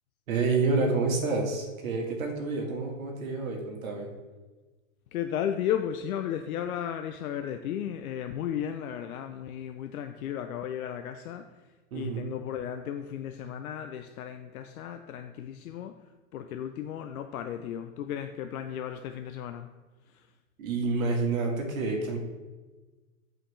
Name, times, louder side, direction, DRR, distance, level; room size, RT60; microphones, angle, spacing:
voice 1, 0.3-4.1 11.9-12.3 20.6-22.2, right 3 dB, 75° right, 1 dB, 1.6 m, -28 dB
voice 2, 5.1-16.0 16.3-19.7 20.1-20.3, left 9 dB, 85° left, 7 dB, 0.5 m, -34 dB
7.6 x 4.1 x 3.2 m, 1.3 s
hypercardioid pair, 130°, 42 cm